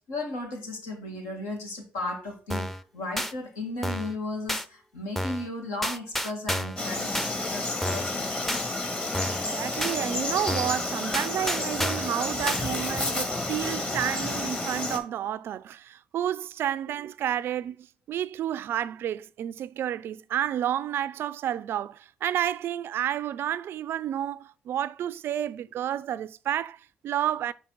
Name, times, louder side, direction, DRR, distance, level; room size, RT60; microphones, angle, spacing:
voice 1, 0.1-2.7 2.9-8.4 12.6-12.7, left 2 dB, 80° left, 1.7 m, -35 dB
sound 1, 2.5-2.8 3.2-3.3 3.8-4.1 4.5-4.6 5.1-5.5 5.8-6.8 7.1-7.3 7.8-8.1 8.5-8.6 9.1-9.5 9.8-10.0 10.5-10.8 11.1-12.1 12.5-12.6, equal, 5° left, 0.6 m, -30 dB
Frog, 6.8-15.0, left 2 dB, 30° left, 1.8 m, -30 dB
voice 2, 9.5-27.5, right 11 dB, 60° right, 0.3 m, -30 dB
5.6 x 4.5 x 3.9 m
hypercardioid pair, 45°, 4 cm